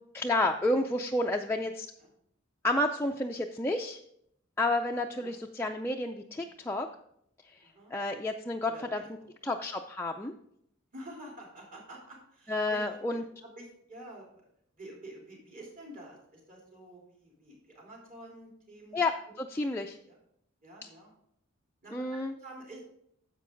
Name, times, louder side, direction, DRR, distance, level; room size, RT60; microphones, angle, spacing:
voice 1, 0.1-1.9 2.6-4.0 4.6-6.9 7.9-9.0 9.5-10.3 12.5-13.2 18.9-20.0 21.9-22.3, left 2 dB, 10° left, 1 dB, 0.4 m, -30 dB
voice 2, 1.6-2.1 4.8-4.9 5.2-5.3 6.3-6.5 7.6-7.9 8.6-9.5 10.9-14.4 14.7-19.0 20.0-20.2 20.6-21.1 21.8-22.8, right 1 dB, 40° right, -2 dB, 3.5 m, -49 dB
10.5 x 7.4 x 3.8 m, 0.71 s
head